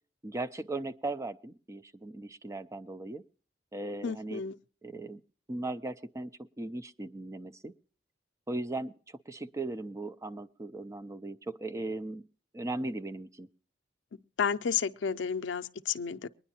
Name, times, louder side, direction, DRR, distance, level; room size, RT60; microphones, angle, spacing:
voice 1, 0.2-3.2 3.7-4.4 4.8-5.2 5.5-6.3 6.6-7.7 8.5-12.2 12.5-13.5, right 2 dB, 15° right, 0.5 m, -38 dB
voice 2, 4.0-4.6 14.4-16.3, left 6 dB, 85° left, 0.5 m, -31 dB
23.0 x 9.9 x 2.8 m
head